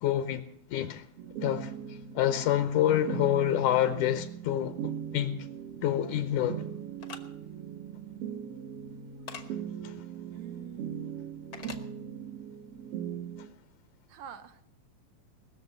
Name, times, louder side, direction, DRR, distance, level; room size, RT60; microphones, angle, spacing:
voice 1, 0.0-1.0 1.4-5.5 5.8-6.6 9.8-9.9, left 11 dB, 80° left, 2.1 m, -28 dB
sound 1, 1.2-13.5, right 9 dB, 65° right, 1.6 m, -40 dB
sound 2, 7.0-7.2 9.3-9.4 11.5-11.8, left 6 dB, 60° left, 0.9 m, -42 dB
voice 2, 10.3-11.0 14.1-14.6, right 8 dB, 80° right, 2.2 m, -46 dB
20.0 x 6.8 x 8.0 m
omnidirectional pair, 3.5 m